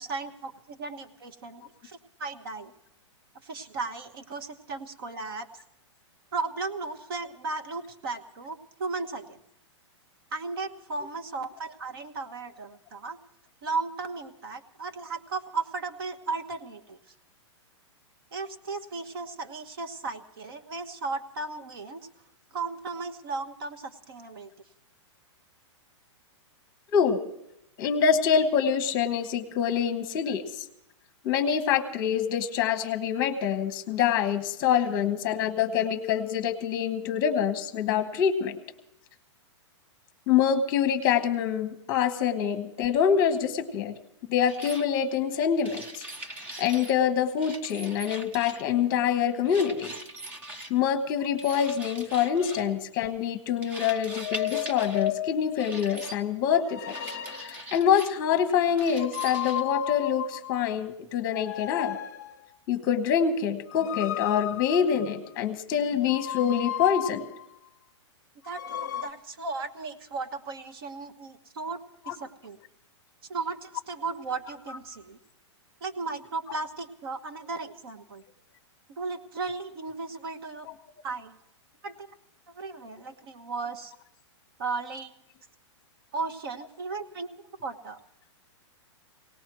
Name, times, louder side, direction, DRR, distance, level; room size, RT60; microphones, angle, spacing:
voice 1, 0.0-2.7 3.4-5.5 6.3-9.4 10.3-13.2 13.6-17.0 18.3-22.1 22.5-24.5 49.6-49.7 52.6-52.7 68.4-72.6 73.3-75.2 75.8-78.2 78.9-80.7 81.0-81.4 81.8-82.1 82.5-83.9 84.6-85.1 86.1-87.3 87.6-88.0, right 4 dB, 50° right, 8 dB, 1.3 m, -35 dB
voice 2, 27.8-30.6 31.2-38.6 40.3-43.9 44.3-46.0 46.6-49.9 50.7-57.0 57.4-62.0 62.7-67.3 72.1-72.2 74.7-74.8, left 8 dB, 20° left, 9 dB, 1.1 m, -25 dB
sound 1, 44.5-44.8 45.6-47.0 47.4-48.7 49.4-50.7 51.4-52.7 53.6-55.1 55.6-56.2 56.9-58.2 58.8-59.6, right 1 dB, 10° right, 0.5 m, -41 dB
sound 2, 52.3-52.7 54.1-55.6 56.6-57.8 59.0-60.7 61.3-62.5 63.7-65.3 66.1-67.5 68.5-69.1, left 12 dB, 35° left, 0.7 m, -34 dB
25.0 x 18.5 x 3.1 m, 0.83 s
hypercardioid pair, 175°, 16 cm